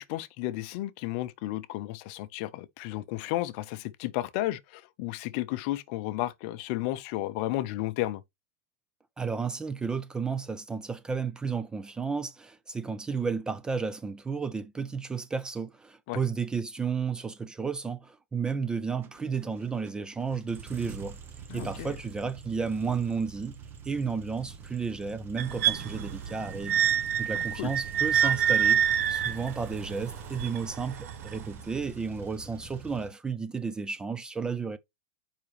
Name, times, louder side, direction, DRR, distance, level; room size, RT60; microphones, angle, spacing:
voice 1, 0.0-8.2 16.1-16.2 21.5-21.9 27.3-27.7, left 16 dB, 45° left, 0.6 m, -33 dB
voice 2, 9.2-21.2 21.5-23.6 23.8-26.8 27.2-28.8 29.1-34.8, right 5 dB, 10° right, 0.4 m, -32 dB
sound 1, 19.0-33.1, right 6 dB, 25° right, 1.0 m, -44 dB
sound 2, 25.4-31.4 32.2-32.3, right 9 dB, 70° right, 1.2 m, -27 dB
7.2 x 5.0 x 3.3 m
supercardioid pair, 150°, 9 cm